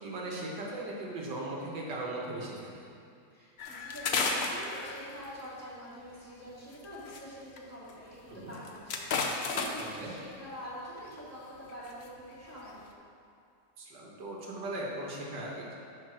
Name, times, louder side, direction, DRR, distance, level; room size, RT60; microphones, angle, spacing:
voice 1, 0.0-2.9 8.3-8.5 9.8-10.1 13.8-15.8, right 1 dB, 85° right, -2 dB, 2.0 m, -38 dB
voice 2, 3.3-12.8, equal, 10° left, -9 dB, 2.1 m, -46 dB
sound 1, 3.6-5.4 6.7-7.2 7.6-7.7 7.9-8.0 8.4-10.0 11.0-11.2 11.7-12.1 12.5-12.8, left 4 dB, 60° left, 0.7 m, -33 dB
9.8 x 4.0 x 6.1 m, 2.4 s
omnidirectional pair, 1.8 m